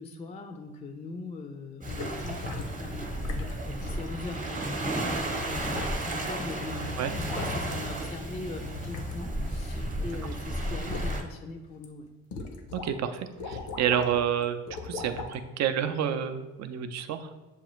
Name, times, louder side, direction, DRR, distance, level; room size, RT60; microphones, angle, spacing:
voice 1, 0.0-12.1, left 3 dB, 25° left, 6 dB, 0.3 m, -41 dB
Waves surf, 1.8-11.2, right 1 dB, 25° right, 0.9 m, -33 dB
sound 1, 1.9-2.8 3.2-3.6 3.8-4.0 4.9-5.0 5.3-6.3 6.5-8.0 8.6-10.1 10.4-11.2 11.7-11.9 12.3-12.9 13.2-14.3 14.7-15.3 16.0-16.1, left 4 dB, 85° left, 0.7 m, -38 dB
voice 2, 12.7-17.3, right 9 dB, 60° right, 9 dB, 0.5 m, -29 dB
7.0 x 2.4 x 3.0 m, 1.2 s
cardioid pair, 90°, 30 cm